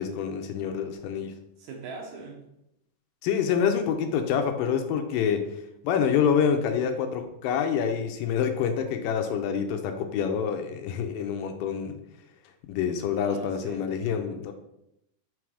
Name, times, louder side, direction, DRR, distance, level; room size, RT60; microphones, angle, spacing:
voice 1, 0.0-1.3 3.2-5.5 5.8-12.0 12.7-14.5, left 7 dB, 80° left, 6 dB, 2.1 m, -27 dB
voice 2, 1.6-2.4 13.2-13.9, right 4 dB, 70° right, 0 dB, 1.9 m, -41 dB
5.9 x 3.9 x 4.8 m, 0.82 s
omnidirectional pair, 4.1 m